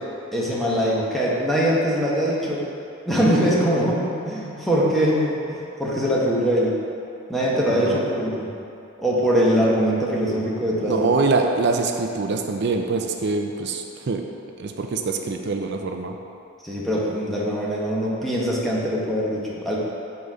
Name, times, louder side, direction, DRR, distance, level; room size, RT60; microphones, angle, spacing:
voice 1, 0.3-2.7 3.1-6.8 7.3-8.5 9.0-11.1 16.6-19.8, equal, ahead, -6 dB, 1.0 m, -22 dB
voice 2, 10.8-14.2 14.6-16.2, right 3 dB, 55° right, 4 dB, 0.5 m, -24 dB
6.9 x 4.1 x 4.9 m, 2.6 s
head